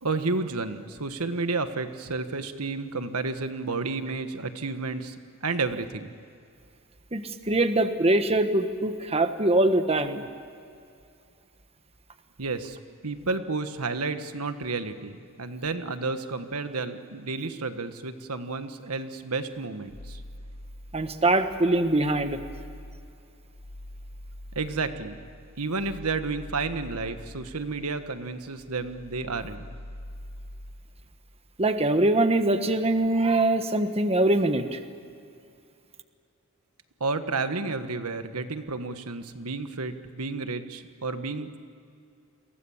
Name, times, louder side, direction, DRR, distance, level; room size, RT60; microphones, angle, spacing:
voice 1, 0.0-5.2 5.4-6.1 12.4-12.8 13.0-20.2 24.5-25.1 25.6-29.6 37.0-41.6, right 3 dB, 80° right, 9 dB, 1.5 m, -31 dB
voice 2, 7.1-10.2 20.9-22.4 31.6-34.8, right 2 dB, 25° right, 8 dB, 1.3 m, -23 dB
sound 1, 19.9-21.4 21.8-28.3 28.6-30.9, left 1 dB, 80° left, 1.4 m, -44 dB
30.0 x 23.5 x 7.3 m, 2.4 s
head